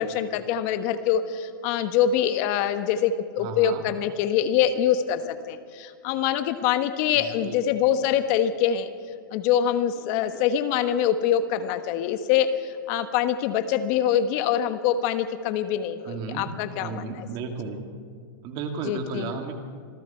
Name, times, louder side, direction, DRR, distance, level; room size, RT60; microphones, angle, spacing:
voice 1, 0.0-8.9 9.3-17.0 18.9-19.3, left 9 dB, 50° left, 9 dB, 1.3 m, -24 dB
voice 2, 3.4-3.8 7.1-7.6 16.0-16.5 16.8-17.8 18.4-19.6, right 5 dB, 40° right, 4 dB, 2.8 m, -34 dB
27.0 x 21.5 x 4.6 m, 2.1 s
hypercardioid pair, 130°, 11 cm